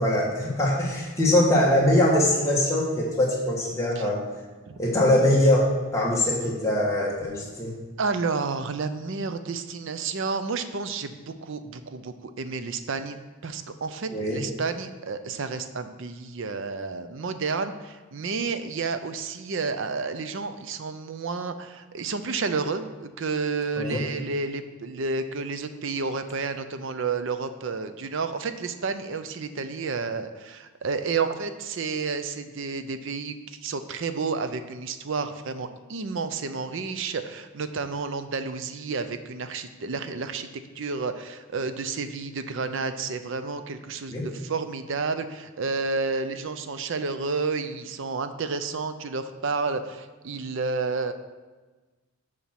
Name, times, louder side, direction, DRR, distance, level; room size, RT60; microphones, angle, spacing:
voice 1, 0.0-4.2 4.8-7.7 14.1-14.4 23.7-24.0 44.1-44.2, left 1 dB, 15° left, -4 dB, 1.5 m, -22 dB
voice 2, 8.0-13.2 13.4-40.5 40.8-51.1, right 4 dB, 55° right, 10 dB, 0.5 m, -31 dB
7.1 x 5.0 x 5.9 m, 1.3 s
head